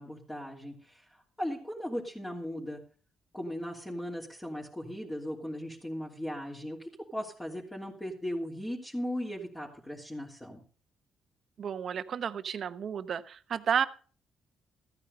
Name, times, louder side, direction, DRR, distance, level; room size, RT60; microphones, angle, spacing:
voice 1, 0.0-2.8 3.3-10.6, equal, 10° left, -3 dB, 3.1 m, -38 dB
voice 2, 11.6-13.9, right 7 dB, 55° right, 12 dB, 1.0 m, -32 dB
14.5 x 9.6 x 5.5 m, 0.41 s
cardioid pair, 90°, 0 cm